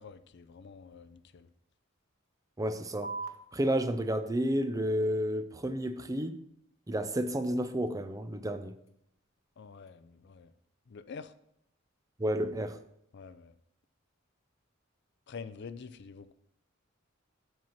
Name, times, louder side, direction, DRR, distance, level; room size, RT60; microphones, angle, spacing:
voice 1, 0.0-1.5 9.6-10.5 10.9-11.3 13.1-13.5 15.3-16.3, left 5 dB, 60° left, 14 dB, 0.5 m, -47 dB
voice 2, 2.6-3.1 3.5-6.4 6.9-8.8 12.2-12.8, equal, 15° right, 10 dB, 0.5 m, -31 dB
sound 1, 3.0-10.0, right 3 dB, 85° left, 1.1 m, -49 dB
7.8 x 5.5 x 5.8 m, 0.75 s
head